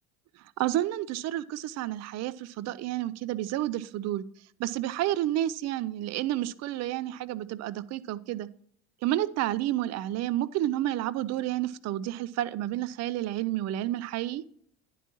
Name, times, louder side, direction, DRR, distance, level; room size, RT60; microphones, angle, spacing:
voice 1, 0.6-4.2 4.6-8.5 9.0-14.4, right 14 dB, 55° right, 0.6 m, -30 dB
10.0 x 9.3 x 3.0 m
supercardioid pair, 85°, 32 cm